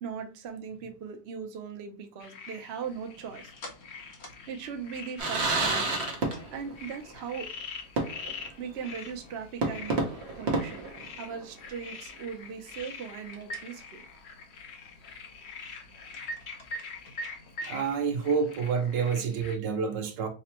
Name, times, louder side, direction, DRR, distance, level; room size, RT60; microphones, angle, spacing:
voice 1, 0.0-3.5 4.5-6.0 6.3-7.5 8.6-10.0 10.3-10.8 11.1-14.0, right 6 dB, 70° right, 0.6 m, -39 dB
sound 1, 2.2-19.6, left 6 dB, 75° left, 0.6 m, -46 dB
sound 2, 2.8-19.2, right 1 dB, 50° left, 0.9 m, -48 dB
sound 3, 5.2-6.8 7.1-7.2 8.0-8.5 8.8-8.9 9.6-11.6, right 3 dB, 45° right, 0.9 m, -30 dB
voice 2, 17.7-20.3, right 6 dB, 85° right, 1.4 m, -28 dB
5.2 x 2.1 x 2.8 m
omnidirectional pair, 1.9 m